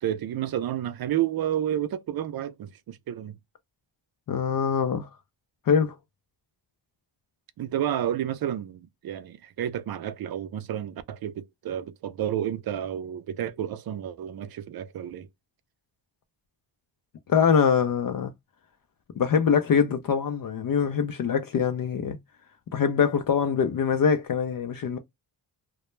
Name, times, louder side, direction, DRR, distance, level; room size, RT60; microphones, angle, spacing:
voice 1, 0.0-3.4 7.6-15.3, right 11 dB, 55° right, 0.5 m, -30 dB
voice 2, 4.3-5.1 5.7-5.9 17.3-18.3 19.2-22.2 22.7-25.0, left 7 dB, 50° left, 0.5 m, -23 dB
2.1 x 2.1 x 2.9 m
cardioid pair, 60°, 45 cm